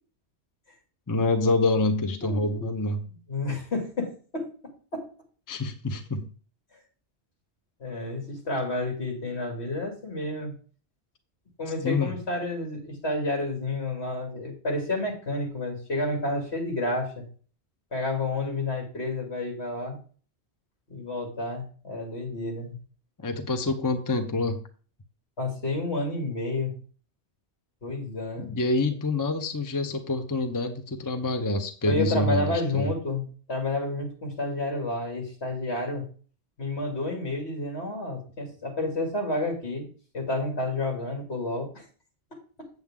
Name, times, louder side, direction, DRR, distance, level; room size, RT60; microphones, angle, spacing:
voice 1, 1.1-3.1 5.5-6.3 11.8-12.1 23.2-24.6 28.4-32.9, left 2 dB, 20° left, 7 dB, 0.7 m, -26 dB
voice 2, 2.2-2.7 3.3-4.5 4.9-5.1 7.8-10.6 11.6-17.3 17.9-20.0 20.9-22.7 25.4-26.7 27.8-28.5 31.8-36.1 36.6-39.9 40.1-41.8, left 2 dB, 65° left, 1 dB, 2.9 m, -30 dB
8.5 x 7.7 x 3.7 m, 0.40 s
omnidirectional pair, 1.2 m